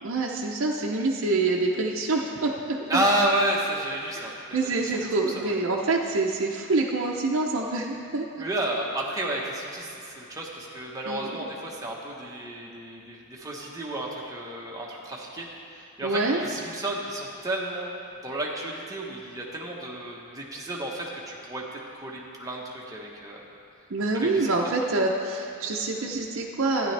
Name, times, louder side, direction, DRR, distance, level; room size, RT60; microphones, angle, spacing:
voice 1, 0.0-3.0 4.1-4.2 4.5-8.5 11.1-11.4 16.0-16.4 23.9-26.9, right 3 dB, 60° right, -2 dB, 0.7 m, -26 dB
voice 2, 2.9-5.1 5.3-5.5 8.4-15.5 15.8-17.9 18.2-23.4 24.1-24.7, right 1 dB, 15° right, -3 dB, 1.1 m, -31 dB
12.5 x 10.0 x 3.3 m, 2.8 s
head